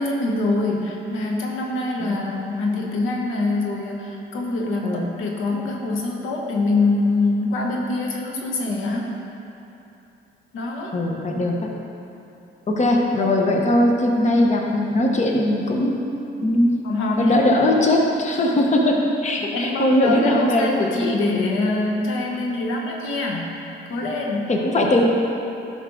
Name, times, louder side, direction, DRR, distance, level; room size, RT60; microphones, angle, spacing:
voice 1, 0.0-9.2 10.5-11.0 16.8-17.5 19.4-24.5, left 2 dB, 85° left, -1 dB, 1.1 m, -24 dB
voice 2, 10.9-11.6 12.7-16.0 16.4-16.7 17.2-20.7 24.5-25.1, left 1 dB, 35° left, 0 dB, 1.1 m, -19 dB
11.0 x 5.5 x 3.8 m, 2.8 s
cardioid pair, 90°, 20 cm